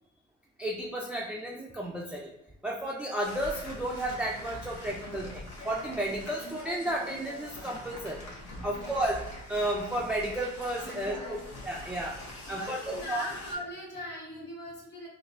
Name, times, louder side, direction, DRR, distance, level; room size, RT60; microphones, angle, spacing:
voice 1, 0.6-2.3 2.6-8.2 8.6-9.2 9.5-12.2 12.5-12.8 13.1-13.2, right 1 dB, 5° right, -3 dB, 0.3 m, -33 dB
sound 1, 3.2-13.5, left 1 dB, 70° left, 1.1 m, -43 dB
voice 2, 8.5-9.0 10.8-11.4 12.5-15.1, left 1 dB, 35° left, -3 dB, 1.4 m, -40 dB
3.9 x 2.3 x 2.5 m, 0.82 s
cardioid pair, 90°, 30 cm